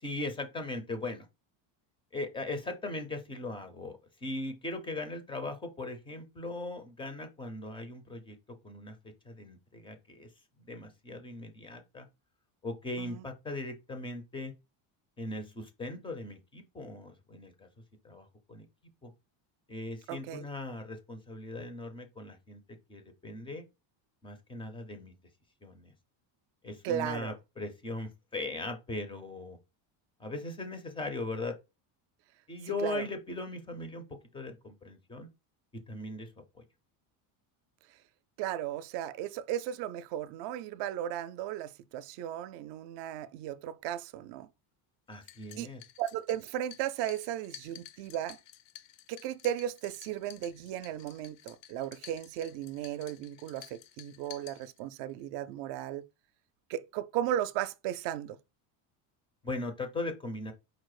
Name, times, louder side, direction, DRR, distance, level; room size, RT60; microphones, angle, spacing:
voice 1, 0.0-1.3 2.1-8.4 8.6-10.3 10.6-12.1 12.6-14.5 15.2-17.7 18.0-18.7 19.0-19.1 19.7-22.6 22.9-23.7 24.2-25.1 25.6-25.9 26.6-29.6 30.2-31.6 32.5-34.1 34.3-35.3 35.9-36.3 36.6-36.7 45.1-45.8 59.4-60.5, left 2 dB, 10° left, 0.4 m, -39 dB
voice 2, 20.1-20.4 26.8-27.4 32.6-33.0 38.4-44.5 45.6-45.7 46.0-48.4 49.1-56.0 56.7-58.4, right 11 dB, 60° right, 0.6 m, -35 dB
sound 1, 45.1-55.1, left 11 dB, 65° left, 0.6 m, -53 dB
4.8 x 2.0 x 4.7 m
cardioid pair, 160°, 48 cm